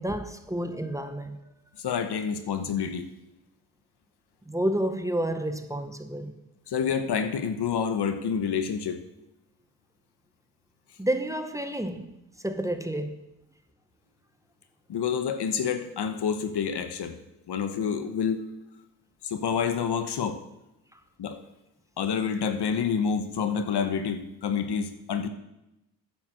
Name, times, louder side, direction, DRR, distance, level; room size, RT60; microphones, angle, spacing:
voice 1, 0.0-1.4 4.5-6.4 11.0-12.1 12.4-13.2 20.9-21.0, right 1 dB, 10° right, 0.9 m, -30 dB
voice 2, 1.8-3.1 6.7-9.0 14.9-17.2 17.5-18.4 19.2-20.4 21.2-21.4 22.0-25.3, left 7 dB, 80° left, 1.1 m, -28 dB
9.4 x 7.4 x 6.3 m
cardioid pair, 85°, 40 cm